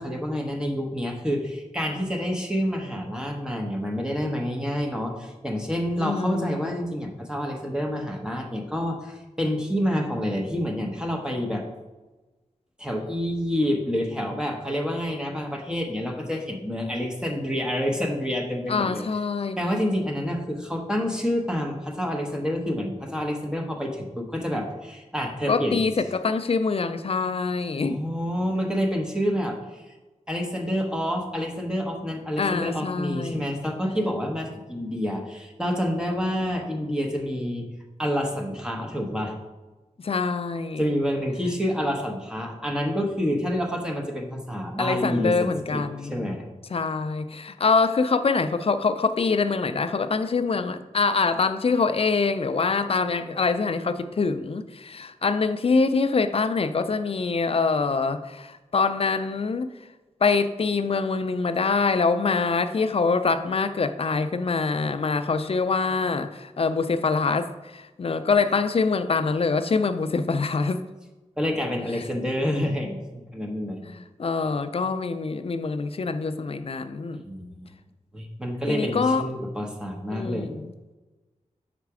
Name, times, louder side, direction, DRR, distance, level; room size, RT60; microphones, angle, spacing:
voice 1, 0.0-11.6 12.8-19.0 19.6-25.8 27.8-29.9 30.3-37.7 38.0-39.3 40.8-45.8 46.1-46.5 71.4-73.8 77.2-77.7 78.1-80.5, equal, 5° right, 1 dB, 0.9 m, -28 dB
voice 2, 6.0-6.7 18.7-19.6 25.5-28.0 32.4-33.6 40.0-41.0 44.8-46.4 46.7-59.7 60.2-70.8 73.8-77.2 78.7-79.3 80.1-80.7, left 4 dB, 50° left, 10 dB, 0.4 m, -25 dB
5.9 x 4.0 x 4.8 m, 1.2 s
wide cardioid pair, 100°, 13 cm